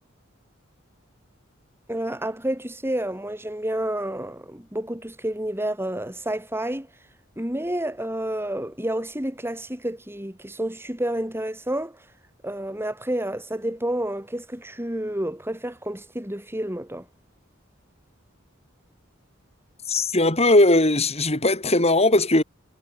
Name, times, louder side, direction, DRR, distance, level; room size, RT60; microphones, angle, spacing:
voice 1, 1.9-6.9 7.4-12.0 12.4-17.0, right 1 dB, 10° right, 5.7 m, -29 dB
voice 2, 19.9-22.4, left 2 dB, 30° left, 6.0 m, -19 dB
head